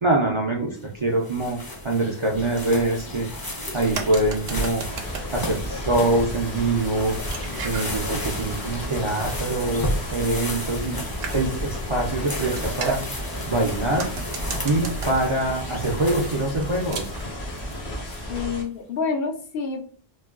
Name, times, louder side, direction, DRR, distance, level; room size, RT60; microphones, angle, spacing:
voice 1, 0.0-3.3 3.7-4.8 5.3-7.1 7.6-11.0 11.3-13.0 13.5-14.1 14.6-17.1, right 2 dB, 45° right, -2 dB, 0.4 m, -24 dB
sound 1, 0.8-18.5, left 1 dB, 25° left, 0.5 m, -34 dB
sound 2, 3.5-17.4, right 5 dB, 80° right, 0.8 m, -37 dB
sound 3, 4.8-18.6, equal, 85° left, 1.6 m, -34 dB
voice 2, 18.3-19.8, left 5 dB, 70° left, 3 dB, 0.8 m, -28 dB
4.0 x 2.2 x 2.3 m, 0.43 s
omnidirectional pair, 1.1 m